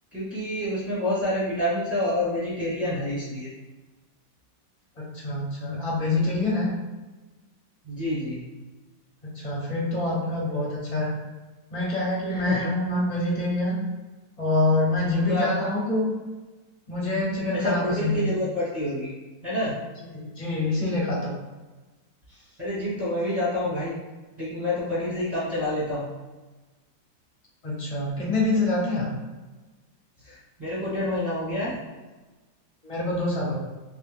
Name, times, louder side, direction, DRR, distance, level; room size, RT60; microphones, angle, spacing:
voice 1, 0.1-3.5 7.8-8.4 12.3-12.7 15.1-15.5 17.6-19.1 19.4-19.8 22.6-24.0 24.4-26.1 30.2-31.8, left 1 dB, 25° right, -9 dB, 1.2 m, -28 dB
voice 2, 5.0-6.7 9.3-11.1 11.7-13.8 14.4-16.1 16.9-18.2 20.2-21.3 27.6-29.1 32.8-33.6, left 2 dB, 30° left, -6 dB, 0.7 m, -26 dB
3.3 x 3.0 x 3.5 m, 1.2 s
omnidirectional pair, 2.1 m